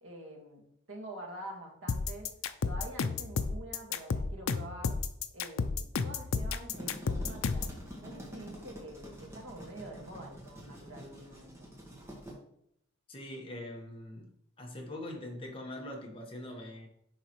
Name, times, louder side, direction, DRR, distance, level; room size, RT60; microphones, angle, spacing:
voice 1, 0.0-2.3 2.7-5.0 5.3-7.7 8.0-11.7, right 1 dB, 80° right, 0 dB, 1.8 m, -46 dB
sound 1, 1.9-7.8, left 5 dB, 90° left, 0.5 m, -32 dB
sound 2, 6.7-12.3, equal, 15° right, 1.6 m, -47 dB
voice 2, 13.1-14.3 14.6-16.9, left 1 dB, 25° left, 0 dB, 1.3 m, -42 dB
10.0 x 4.0 x 3.1 m, 0.74 s
head